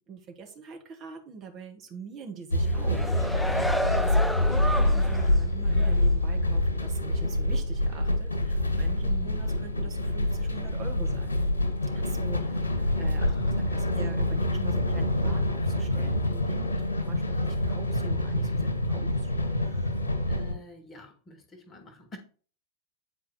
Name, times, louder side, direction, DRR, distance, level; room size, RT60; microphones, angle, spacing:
voice 1, 0.0-11.4 11.9-13.3 13.7-19.3 19.6-20.0, right 5 dB, 35° right, 1.7 m, -44 dB
sound 1, 2.5-20.5, left 1 dB, 75° left, 1.4 m, -26 dB
sound 2, 2.6-5.4 5.8-5.9, equal, ahead, 0.4 m, -31 dB
voice 2, 9.0-9.3 13.2-13.6 13.8-13.9 20.3-22.2, equal, 20° left, 1.5 m, -46 dB
8.6 x 4.6 x 4.3 m
figure-of-eight pair, 90°, 0 cm